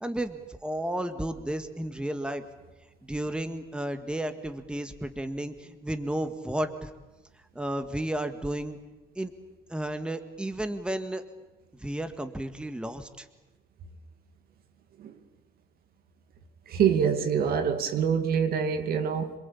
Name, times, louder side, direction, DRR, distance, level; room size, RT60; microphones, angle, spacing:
voice 1, 0.0-2.4 3.0-6.9 7.6-8.8 9.2-9.3 9.7-11.2 11.8-13.3, right 1 dB, 5° right, 1.9 m, -32 dB
voice 2, 16.7-19.3, right 7 dB, 60° right, 2.4 m, -25 dB
27.0 x 21.5 x 8.6 m
cardioid pair, 110°, 17 cm